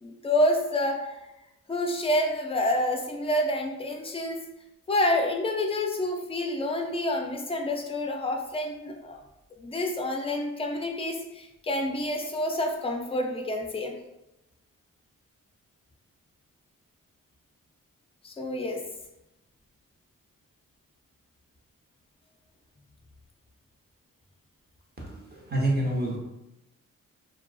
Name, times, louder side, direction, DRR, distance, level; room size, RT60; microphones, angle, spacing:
voice 1, 0.0-1.0 1.7-4.4 4.9-9.2 9.6-13.9 18.2-18.8, left 1 dB, 20° left, 3 dB, 0.4 m, -28 dB
voice 2, 25.0-26.2, right 1 dB, 30° right, -2 dB, 0.9 m, -28 dB
2.3 x 2.3 x 2.3 m, 0.91 s
cardioid pair, 60°, 33 cm